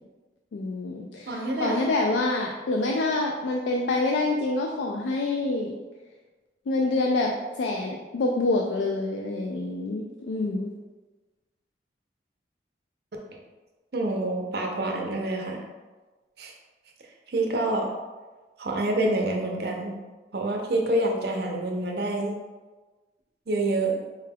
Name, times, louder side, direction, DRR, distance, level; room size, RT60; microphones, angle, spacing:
voice 1, 0.5-5.7 6.7-10.7, left 2 dB, 80° left, 1 dB, 0.3 m, -27 dB
voice 2, 1.3-1.8 13.9-15.6 16.4-16.5 17.3-17.9 18.6-20.0 20.3-22.4 23.5-24.0, right 2 dB, 60° right, 1 dB, 0.6 m, -27 dB
4.6 x 2.2 x 3.3 m, 1.3 s
head